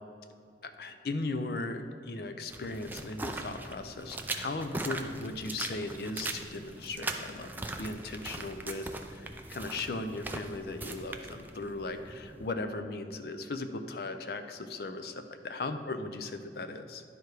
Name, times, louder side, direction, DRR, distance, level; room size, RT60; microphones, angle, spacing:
voice 1, 0.6-15.1 15.4-17.0, left 2 dB, 60° left, 8 dB, 0.5 m, -37 dB
sound 1, 2.5-12.5, right 2 dB, 10° right, 0.4 m, -40 dB
10.5 x 4.7 x 4.8 m, 2.3 s
head